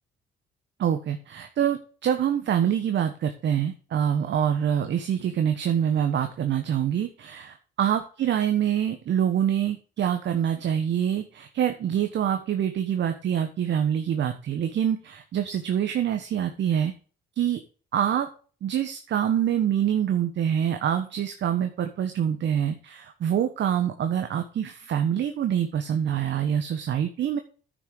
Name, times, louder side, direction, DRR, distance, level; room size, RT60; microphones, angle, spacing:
voice 1, 0.8-16.9 17.4-17.6 17.9-18.3 18.6-27.4, right 9 dB, 65° right, 7 dB, 1.2 m, -25 dB
10.0 x 6.3 x 4.9 m, 0.38 s
cardioid pair, 90°, 20 cm